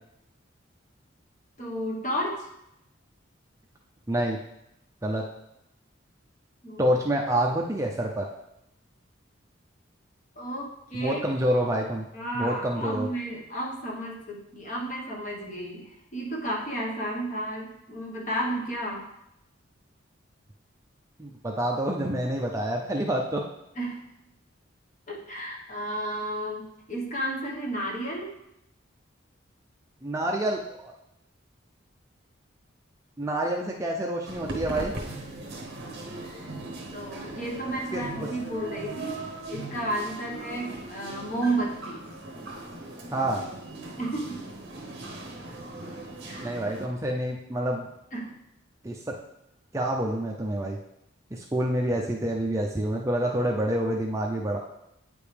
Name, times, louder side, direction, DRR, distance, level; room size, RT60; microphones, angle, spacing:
voice 1, 1.6-2.5 6.6-6.9 10.4-11.2 12.1-19.1 23.7-24.1 25.1-28.3 36.2-36.5 36.9-42.0 44.0-44.5 46.3-46.6 48.1-48.3, right 1 dB, 40° left, -2 dB, 1.3 m, -32 dB
voice 2, 4.1-4.4 5.0-5.2 6.8-8.3 10.9-12.1 12.3-13.1 21.2-23.4 30.0-30.9 33.2-34.9 37.9-38.3 43.1-43.4 46.4-47.9 48.8-49.2 49.7-50.8 51.3-54.6, right 1 dB, 15° right, 0 dB, 0.5 m, -27 dB
sound 1, 34.2-46.9, right 2 dB, 55° right, 0.9 m, -39 dB
8.8 x 5.1 x 3.4 m, 0.83 s
head